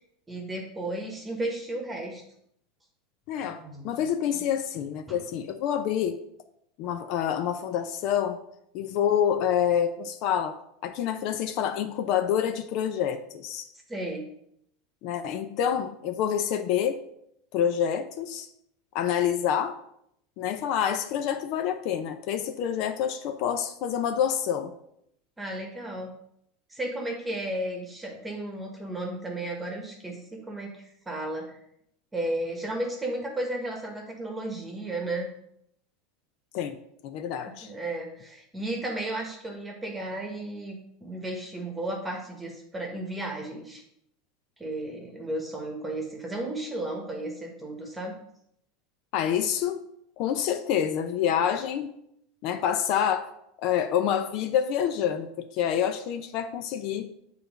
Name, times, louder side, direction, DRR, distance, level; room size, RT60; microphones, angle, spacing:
voice 1, 0.3-2.2 3.4-4.0 5.1-5.2 13.9-14.2 25.4-26.1 26.7-31.6 32.1-35.3 37.4-43.8 44.6-48.1, right 1 dB, 10° right, 1 dB, 1.2 m, -34 dB
voice 2, 3.3-6.2 6.8-8.4 8.7-10.6 10.8-13.7 15.0-17.0 17.5-18.5 18.9-19.8 20.4-24.8 36.5-36.8 37.0-37.7 49.1-49.8 50.2-51.9 52.4-53.3 53.6-57.1, left 9 dB, 55° left, 9 dB, 0.5 m, -27 dB
6.9 x 3.3 x 5.1 m, 0.74 s
supercardioid pair, 125°, 0 cm